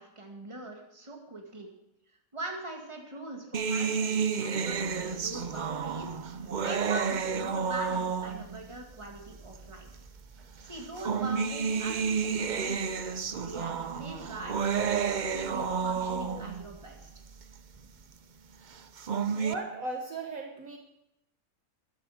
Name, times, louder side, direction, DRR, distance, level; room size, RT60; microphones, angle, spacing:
voice 1, 0.0-1.7 2.1-9.9 10.6-13.2 13.4-14.7 15.0-17.1, right 2 dB, 20° right, 1 dB, 2.1 m, -42 dB
sound 1, 3.5-8.6 9.5-9.6 10.7-16.6 18.8-19.5, right 6 dB, 85° right, 0.4 m, -30 dB
sound 2, 4.6-18.6, right 3 dB, ahead, 2.1 m, -55 dB
voice 2, 19.3-20.8, right 3 dB, 60° right, 3 dB, 1.5 m, -37 dB
13.5 x 10.5 x 5.0 m, 0.87 s
omnidirectional pair, 1.7 m